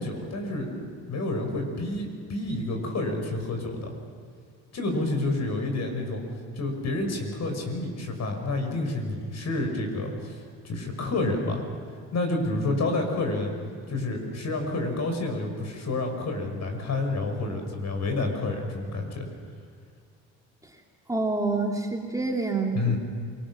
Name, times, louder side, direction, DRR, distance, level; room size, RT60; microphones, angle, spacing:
voice 1, 0.0-3.9 4.7-6.2 6.5-11.6 12.1-13.5 13.9-19.3 22.7-23.0, left 2 dB, 50° left, 4 dB, 5.7 m, -29 dB
voice 2, 21.1-22.9, right 3 dB, 10° right, 0 dB, 2.8 m, -27 dB
27.5 x 20.0 x 6.3 m, 2.1 s
supercardioid pair, 75°, 35 cm